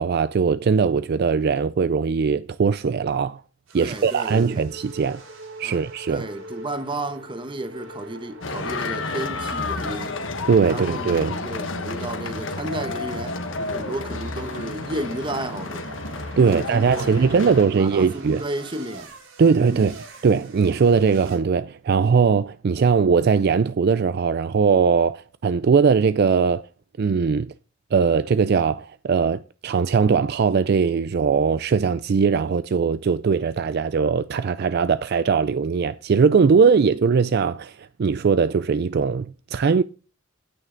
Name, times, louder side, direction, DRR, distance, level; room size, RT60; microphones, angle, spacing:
voice 1, 0.0-3.4 3.7-5.2 5.6-6.3 10.5-11.3 16.4-18.4 19.4-20.0 20.2-26.6 27.0-27.5 27.9-39.8, right 5 dB, 55° right, 0.4 m, -20 dB
voice 2, 3.7-4.7 5.6-5.8 6.1-10.2 10.6-13.4 13.7-16.0 16.4-19.1 19.7-20.0, right 1 dB, 25° right, 1.1 m, -33 dB
sound 1, 3.7-21.4, right 2 dB, 85° right, 4.6 m, -44 dB
sound 2, 8.4-17.7, left 3 dB, 70° left, 1.4 m, -31 dB
9.3 x 9.2 x 3.9 m
head